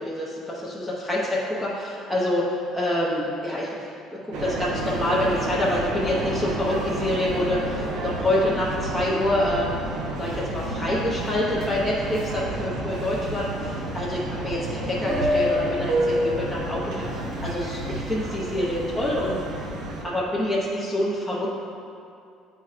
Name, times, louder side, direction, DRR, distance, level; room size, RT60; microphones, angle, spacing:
voice 1, 0.0-3.9 4.2-9.8 10.2-19.4 20.0-21.5, left 1 dB, ahead, -8 dB, 0.7 m, -26 dB
sound 1, 4.3-20.0, right 1 dB, 70° right, 0.8 m, -29 dB
8.8 x 4.3 x 2.5 m, 2.5 s
cardioid pair, 140°, 0 cm